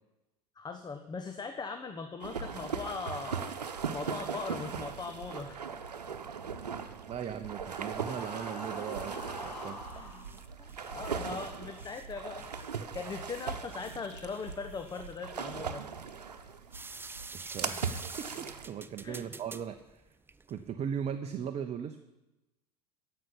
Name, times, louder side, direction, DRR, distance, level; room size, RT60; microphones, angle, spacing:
voice 1, 0.6-3.6 3.9-5.7 7.7-7.8 9.9-15.8 17.6-17.8 19.0-19.2, left 4 dB, 20° left, 7 dB, 1.0 m, -40 dB
sound 1, 2.2-18.7, right 6 dB, 80° right, 1.0 m, -39 dB
voice 2, 7.1-9.1 9.4-9.8 17.3-17.8 18.2-20.0 20.5-22.0, right 8 dB, 30° right, 7 dB, 0.9 m, -38 dB
sound 2, 8.0-10.2, left 1 dB, 85° left, 3.9 m, -44 dB
sound 3, 9.4-20.7, right 3 dB, 10° right, 0.6 m, -49 dB
15.0 x 5.8 x 9.9 m, 1.0 s
figure-of-eight pair, 75°, 20 cm